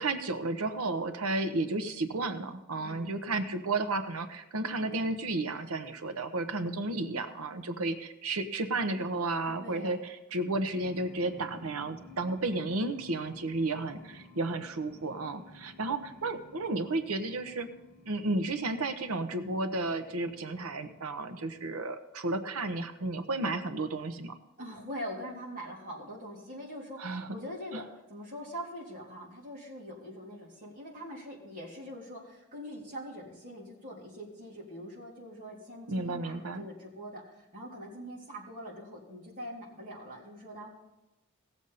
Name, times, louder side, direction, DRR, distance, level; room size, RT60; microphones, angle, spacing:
voice 1, 0.0-17.7 18.1-24.3 27.0-27.4 27.7-27.8 35.9-36.6, right 2 dB, 75° right, 9 dB, 0.9 m, -32 dB
voice 2, 2.7-3.1 9.5-10.0 24.6-40.7, equal, 40° right, -5 dB, 3.4 m, -43 dB
sound 1, 10.7-21.6, left 2 dB, 5° right, 2.0 m, -54 dB
18.0 x 7.1 x 4.1 m, 0.97 s
head